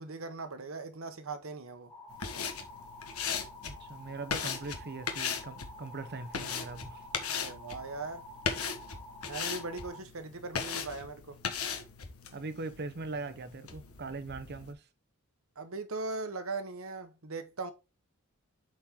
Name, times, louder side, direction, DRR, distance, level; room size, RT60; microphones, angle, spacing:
voice 1, 0.0-1.9 7.3-8.2 9.3-11.4 15.6-17.7, right 3 dB, 65° right, 1.1 m, -39 dB
sound 1, 1.9-10.0, left 1 dB, 10° left, 1.3 m, -49 dB
sound 2, 2.1-14.7, left 6 dB, 85° left, 1.3 m, -38 dB
voice 2, 3.6-7.1 7.4-7.6 12.3-14.8, right 3 dB, 50° right, 0.7 m, -41 dB
7.4 x 4.4 x 3.6 m
head